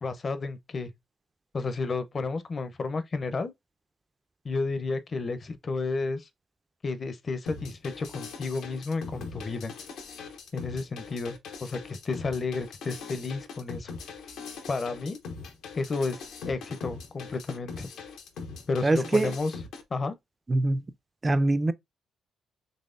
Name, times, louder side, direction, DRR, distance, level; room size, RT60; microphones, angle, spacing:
voice 1, 0.0-0.9 1.5-3.5 4.4-6.3 6.8-9.7 10.5-13.9 14.7-15.2 15.8-17.9 18.7-19.6 19.9-20.1, left 3 dB, 40° left, 0.6 m, -32 dB
sound 1, 7.5-19.8, left 5 dB, 80° left, 0.7 m, -41 dB
voice 2, 18.8-19.3 20.5-20.8 21.2-21.7, right 2 dB, 25° right, 0.3 m, -23 dB
4.1 x 3.1 x 2.4 m
cardioid pair, 90°, 0 cm